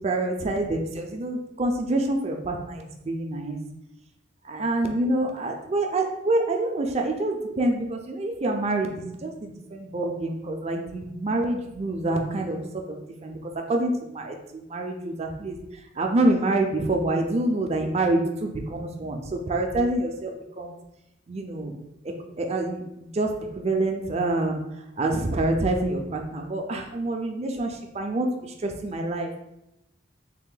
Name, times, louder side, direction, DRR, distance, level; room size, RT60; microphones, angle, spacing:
voice 1, 0.0-3.6 4.5-12.6 12.9-13.4 13.7-15.6 16.0-20.7 21.3-21.7 22.4-24.6 25.0-29.4, right 2 dB, 35° right, 3 dB, 0.4 m, -27 dB
3.5 x 2.6 x 3.8 m, 0.88 s
head